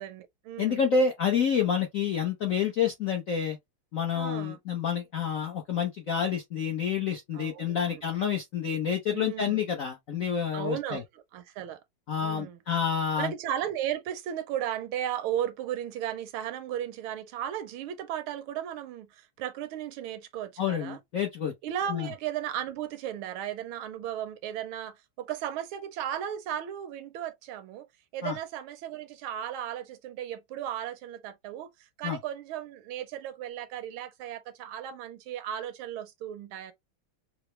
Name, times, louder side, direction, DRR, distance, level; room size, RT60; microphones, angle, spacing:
voice 1, 0.0-0.8 4.1-4.6 7.3-8.0 9.1-9.6 10.5-11.8 12.2-12.6 13.2-21.0 21.6-27.9 28.1-31.7 32.0-36.7, right 10 dB, 80° right, 1.4 m, -35 dB
voice 2, 0.6-3.6 3.9-11.0 12.1-13.3 20.6-21.5 21.9-22.1 28.2-28.4 32.0-32.2, left 7 dB, 70° left, 0.7 m, -28 dB
4.8 x 2.0 x 3.1 m
omnidirectional pair, 2.4 m